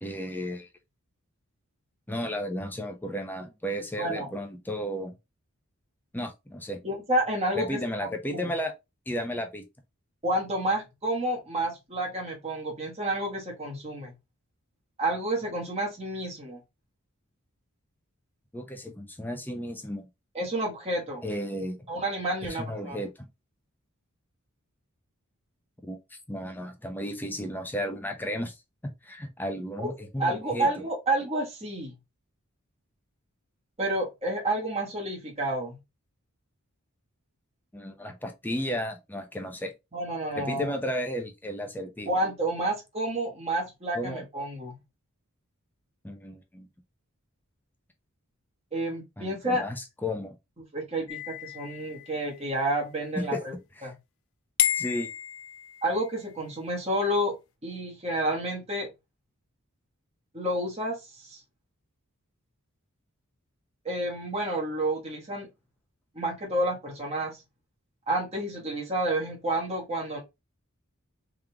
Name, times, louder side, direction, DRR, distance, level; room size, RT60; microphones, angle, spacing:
voice 1, 0.0-0.7 2.1-5.2 6.1-6.8 7.5-8.7 9.1-9.6 18.5-20.0 21.2-21.9 22.4-23.1 25.8-26.0 26.3-28.6 28.8-30.7 37.7-39.7 40.3-42.1 43.9-44.2 46.0-46.7 49.2-50.4 53.2-53.4 53.8-53.9 54.7-55.1, equal, 10° left, 0.7 m, -33 dB
voice 2, 4.0-4.3 6.8-7.8 8.3-8.5 10.2-14.1 15.0-16.6 20.3-21.2 21.9-23.0 29.8-29.9 30.2-31.9 33.8-35.8 39.9-40.6 42.1-44.8 48.7-49.6 50.7-53.5 53.8-53.9 55.8-57.4 57.6-58.9 60.3-61.0 61.2-61.4 63.8-65.5 66.1-67.4 68.1-70.2, right 1 dB, 30° right, 1.4 m, -30 dB
sound 1, 51.1-52.6 54.6-56.2, left 11 dB, 65° left, 0.4 m, -31 dB
3.7 x 3.1 x 3.4 m
head